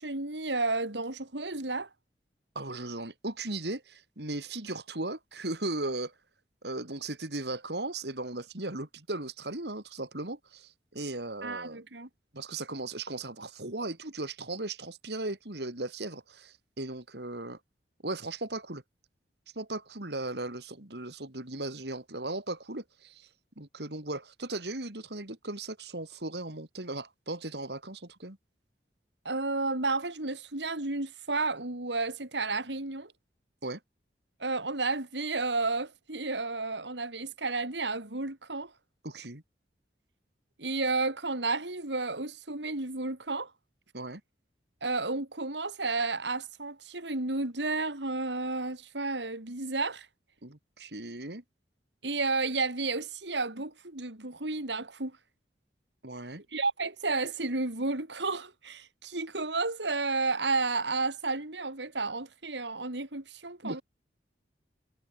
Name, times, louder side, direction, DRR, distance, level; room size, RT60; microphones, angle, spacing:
voice 1, 0.0-1.9 11.4-12.1 29.3-33.1 34.4-38.7 40.6-43.5 44.8-50.1 52.0-55.2 56.5-63.8, right 3 dB, 85° right, 3.5 m, -32 dB
voice 2, 2.6-6.1 6.6-11.8 12.3-17.6 18.0-18.8 19.6-23.3 23.6-28.4 33.6-33.8 39.0-39.4 43.9-44.2 50.4-51.4 56.0-56.4 63.6-63.8, right 2 dB, 70° right, 3.6 m, -37 dB
head